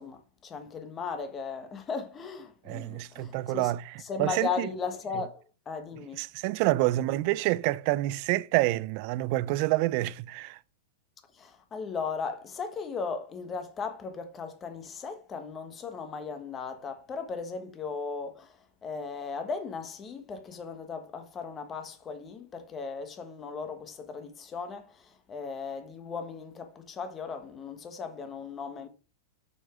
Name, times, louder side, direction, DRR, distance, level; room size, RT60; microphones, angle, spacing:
voice 1, 0.0-3.7 4.0-6.3 6.9-7.2 11.3-28.9, left 5 dB, 20° left, 1.2 m, -37 dB
voice 2, 2.7-3.8 4.2-4.7 6.2-10.6, right 18 dB, 40° right, 0.4 m, -27 dB
7.0 x 6.2 x 4.9 m
supercardioid pair, 160°, 0 cm